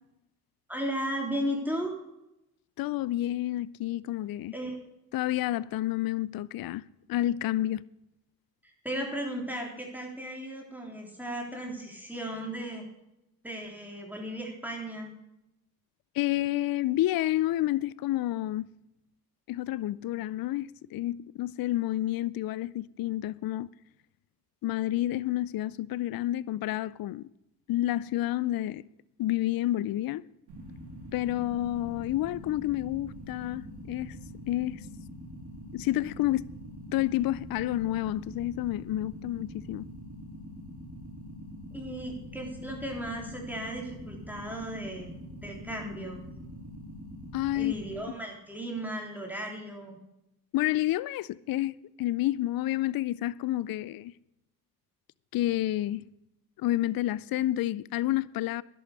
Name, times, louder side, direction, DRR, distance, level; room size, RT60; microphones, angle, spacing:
voice 1, 0.7-1.9 4.5-4.8 8.6-12.8 13.4-15.1 41.7-45.1 45.4-46.2 47.5-50.0, equal, 5° right, 3.7 m, -35 dB
voice 2, 2.8-4.5 5.1-6.8 7.1-7.8 16.1-18.7 19.5-23.7 24.6-27.3 27.7-28.9 29.2-30.3 31.1-34.2 34.5-34.8 35.7-36.5 36.9-39.9 47.3-47.7 50.5-54.1 55.3-56.1 56.6-58.6, left 15 dB, 65° left, 0.5 m, -29 dB
sound 1, 30.5-47.9, equal, 80° right, 2.4 m, -44 dB
11.0 x 8.5 x 6.7 m
supercardioid pair, 50°, 40 cm